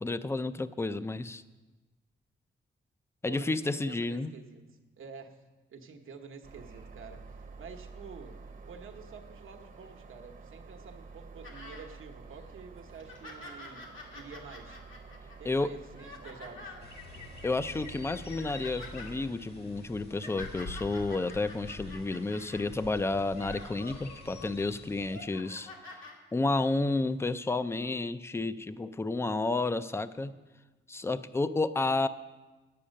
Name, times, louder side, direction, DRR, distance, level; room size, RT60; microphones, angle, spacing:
voice 1, 0.0-1.4 3.2-4.3 15.5-15.7 17.4-25.7 26.3-30.4 30.9-32.1, left 3 dB, 15° left, 13 dB, 0.3 m, -31 dB
voice 2, 3.2-14.8 15.4-16.8, right 5 dB, 85° right, 4 dB, 1.0 m, -49 dB
sound 1, 6.4-19.3, right 4 dB, 40° right, 0.8 m, -49 dB
sound 2, 11.4-11.9 12.3-12.4 12.9-16.9 17.6-17.8 18.1-19.1 19.9-22.7 23.2-24.5 24.9-26.1 27.1-27.2, left 2 dB, 80° left, 1.7 m, -47 dB
sound 3, 16.8-25.2, left 2 dB, 55° left, 1.5 m, -47 dB
9.7 x 8.5 x 6.4 m, 1.2 s
wide cardioid pair, 160°, 20 cm